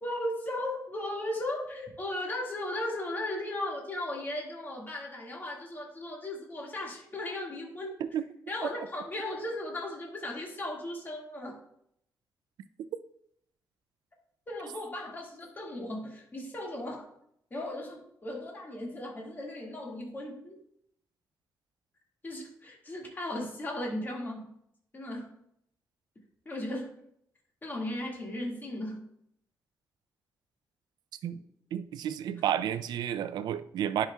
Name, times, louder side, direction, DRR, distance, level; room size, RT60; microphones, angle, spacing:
voice 1, 0.0-7.9 8.5-11.6 14.5-17.1 17.5-20.6 22.2-24.5 24.9-25.3 26.5-26.9 27.6-29.1, left 1 dB, 30° left, -1 dB, 2.0 m, -36 dB
voice 2, 31.7-34.1, right 10 dB, 85° right, 13 dB, 0.5 m, -31 dB
11.0 x 5.9 x 2.4 m, 0.71 s
cardioid pair, 115°, 7 cm